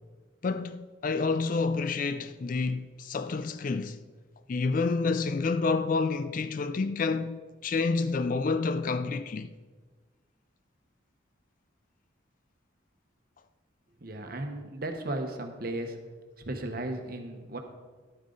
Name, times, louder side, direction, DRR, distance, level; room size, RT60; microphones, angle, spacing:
voice 1, 0.4-4.0 4.5-9.5, left 4 dB, 40° left, 0.3 m, -29 dB
voice 2, 14.0-16.0 16.5-17.6, right 1 dB, 45° right, 1.1 m, -35 dB
11.5 x 8.7 x 3.9 m
head